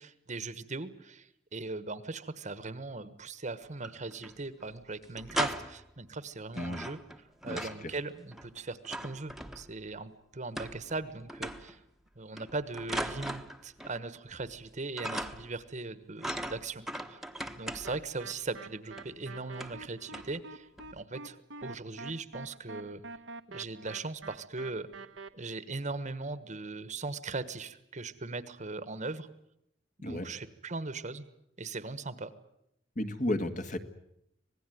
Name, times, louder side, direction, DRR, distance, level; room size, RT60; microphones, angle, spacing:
voice 1, 0.0-7.0 7.4-11.8 12.2-16.8 17.1-17.2 17.6-20.7 20.9-21.4 21.6-23.0 23.5-24.9 25.3-29.3 30.0-31.2 31.6-32.3, right 3 dB, 40° right, 14 dB, 1.3 m, -39 dB
sound 1, 3.6-4.3 4.6-4.7 5.0-5.9 6.5-7.9 8.2-9.9 10.6-11.0 11.3-11.8 12.4-14.0 14.3-14.7 15.0-15.6 16.2-18.1 19.0-19.1 19.5-19.9 20.1-20.4 20.8-21.0, right 1 dB, ahead, 1.2 m, -39 dB
voice 2, 7.5-8.0 30.0-30.3 33.0-33.8, left 1 dB, 45° left, 7 dB, 1.8 m, -33 dB
sound 2, 17.8-25.3, right 3 dB, 80° right, 1.2 m, -46 dB
26.0 x 19.0 x 9.3 m, 0.78 s
head